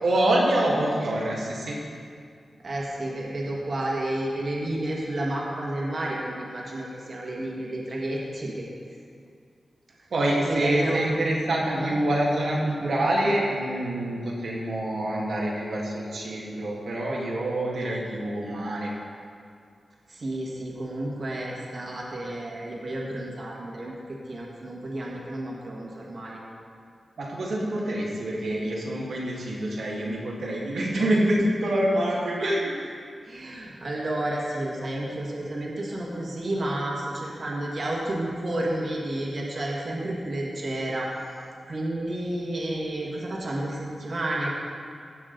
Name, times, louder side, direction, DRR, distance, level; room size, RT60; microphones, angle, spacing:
voice 1, 0.0-1.8 10.1-18.9 27.2-32.9, right 1 dB, 80° right, -4 dB, 1.8 m, -26 dB
voice 2, 2.6-8.7 10.5-11.0 11.5-12.0 20.1-26.4 33.2-41.1 41.7-44.5, right 1 dB, 50° right, -3 dB, 1.7 m, -31 dB
16.5 x 6.2 x 3.9 m, 2.3 s
wide cardioid pair, 90°, 0 cm